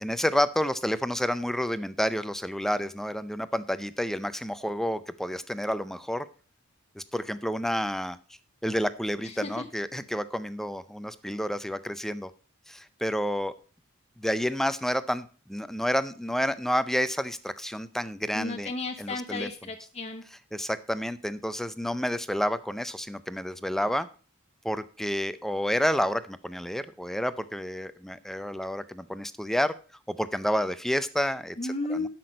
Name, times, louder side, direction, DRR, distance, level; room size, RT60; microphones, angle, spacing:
voice 1, 0.0-6.3 7.0-8.2 8.6-12.3 12.7-13.5 14.2-18.7 19.0-19.5 20.5-24.1 24.6-29.7 30.1-31.6 31.9-32.1, equal, ahead, 14 dB, 0.5 m, -29 dB
voice 2, 9.2-9.7 18.3-20.2 31.6-32.1, left 3 dB, 30° left, 3 dB, 0.8 m, -33 dB
12.0 x 6.0 x 5.2 m, 0.38 s
head